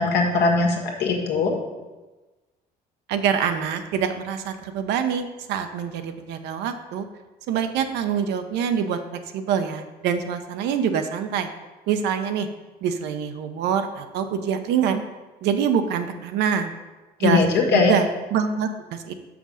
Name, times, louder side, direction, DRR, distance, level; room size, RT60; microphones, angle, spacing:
voice 1, 0.0-1.5 17.2-17.9, left 4 dB, 80° left, 1 dB, 1.6 m, -20 dB
voice 2, 3.1-7.1 7.5-9.0 9.3-11.5 11.9-12.5 12.8-15.0 15.4-16.8 17.2-19.1, right 7 dB, 85° right, 7 dB, 0.7 m, -25 dB
6.2 x 5.9 x 5.6 m, 1.2 s
cardioid pair, 110°, 17 cm